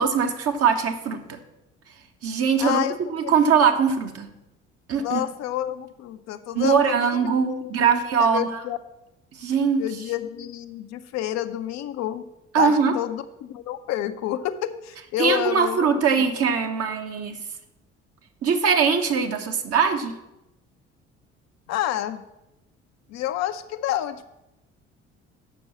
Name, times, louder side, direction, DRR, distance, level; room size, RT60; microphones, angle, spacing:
voice 1, 0.0-1.4 2.2-2.8 3.1-4.3 4.9-5.2 6.5-8.6 9.4-9.9 12.5-13.0 15.2-17.4 18.4-20.2, right 6 dB, 45° right, 5 dB, 1.2 m, -21 dB
voice 2, 2.6-3.0 3.2-3.3 5.0-8.8 9.8-12.2 12.5-15.9 21.7-22.2 23.1-24.3, left 12 dB, 50° left, 9 dB, 0.6 m, -29 dB
7.8 x 6.1 x 7.3 m, 0.92 s
figure-of-eight pair, 50°, 34 cm